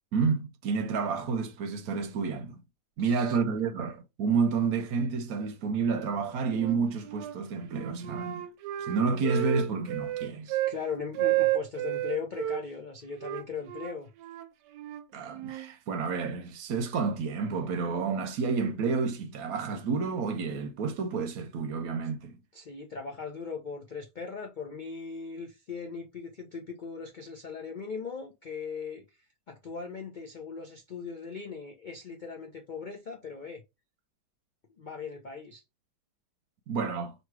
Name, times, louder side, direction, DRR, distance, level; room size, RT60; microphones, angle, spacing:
voice 1, 0.1-2.6 3.0-8.4 8.8-10.6 15.1-22.4 36.7-37.1, right 5 dB, 70° right, 1.0 m, -30 dB
voice 2, 3.0-3.4 10.7-14.1 22.5-29.0 29.5-33.6 34.8-35.6, left 5 dB, 80° left, 0.4 m, -39 dB
Wind instrument woodwind instrument, 6.5-7.4 7.7-10.8 11.1-12.6 13.2-15.7, right 15 dB, 90° right, 1.2 m, -32 dB
3.0 x 2.8 x 4.6 m
omnidirectional pair, 1.8 m